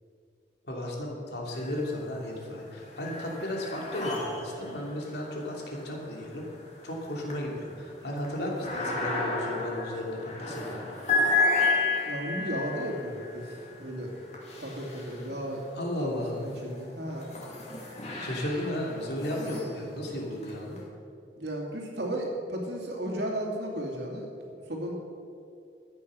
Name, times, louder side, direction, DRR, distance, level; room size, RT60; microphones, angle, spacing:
voice 1, 0.6-6.4 6.8-10.9 15.7-16.4 18.2-20.8, left 1 dB, 70° left, -1 dB, 2.8 m, -34 dB
sound 1, 1.5-2.2 2.5-15.7 16.3-20.8, left 3 dB, 40° left, 2.7 m, -33 dB
voice 2, 12.1-14.1 14.6-15.6 16.0-17.3 21.4-24.9, right 1 dB, 75° right, -1 dB, 2.7 m, -34 dB
13.5 x 9.5 x 6.4 m, 2.5 s
head